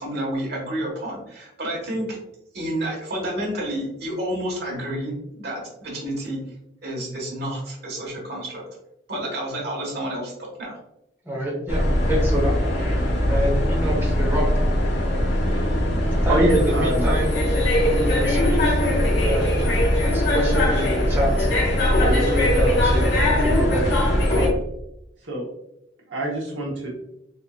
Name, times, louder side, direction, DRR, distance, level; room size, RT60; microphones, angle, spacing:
voice 1, 0.0-2.2 2.5-6.4 6.8-8.6 9.1-10.8, right 1 dB, 60° right, -2 dB, 1.3 m, -30 dB
voice 2, 11.3-12.5 13.2-14.5 16.2-17.4 17.8-18.8 19.2-19.7 20.1-21.5 22.0-24.5, equal, 10° right, -4 dB, 0.9 m, -27 dB
sound 1, 11.7-24.5, left 1 dB, 60° left, 1.0 m, -20 dB
voice 3, 16.1-17.1 25.2-25.5 26.1-26.9, right 1 dB, 75° right, -3 dB, 0.9 m, -25 dB
4.2 x 2.6 x 2.3 m, 0.85 s
head